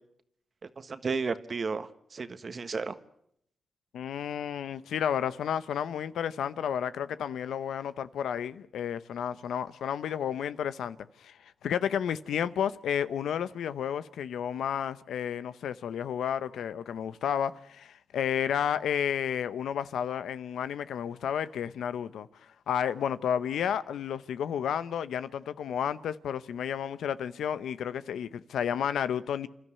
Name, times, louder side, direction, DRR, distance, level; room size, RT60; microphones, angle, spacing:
voice 1, 0.6-3.0, right 4 dB, 50° right, 1.4 m, -33 dB
voice 2, 3.9-29.5, left 9 dB, 85° left, 0.8 m, -32 dB
28.0 x 12.5 x 9.7 m
cardioid pair, 60°, 0 cm